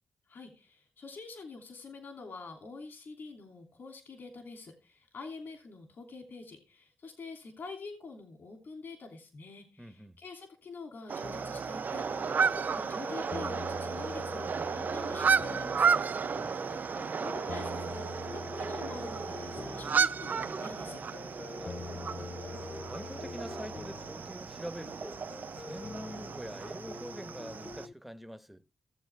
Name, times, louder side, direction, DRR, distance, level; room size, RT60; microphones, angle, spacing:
voice 1, 0.3-16.1 16.9-21.0, left 4 dB, 65° left, 2.9 m, -46 dB
voice 2, 9.8-10.2 16.3-16.7 21.6-22.2 22.9-28.6, equal, 5° right, 1.1 m, -45 dB
sound 1, 11.1-27.9, right 6 dB, 50° right, 0.4 m, -33 dB
sound 2, 11.2-27.9, left 5 dB, 40° left, 0.5 m, -45 dB
16.5 x 7.5 x 3.5 m
cardioid pair, 65°, 4 cm